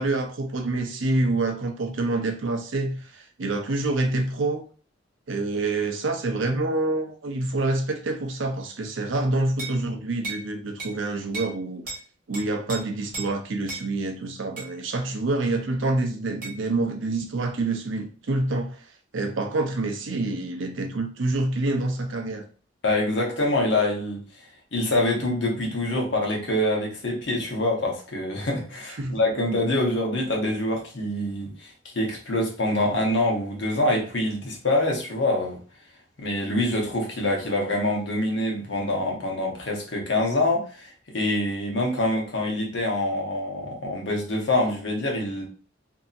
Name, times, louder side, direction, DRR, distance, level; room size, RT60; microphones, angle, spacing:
voice 1, 0.0-4.6 5.3-11.8 12.3-18.8 19.1-22.4 29.0-29.2, right 2 dB, 90° right, 4 dB, 0.6 m, -27 dB
sound 1, 9.6-9.8 10.2-10.5 10.8-11.0 11.3-11.6 11.9-12.0 12.3-12.8 13.1-13.3 13.7-13.9 14.6-14.7 16.4-16.6, right 3 dB, 45° right, 1.2 m, -34 dB
voice 2, 22.8-24.2 24.7-35.6 36.2-45.5, left 1 dB, 70° left, 0 dB, 0.9 m, -25 dB
2.8 x 2.6 x 2.4 m, 0.39 s
head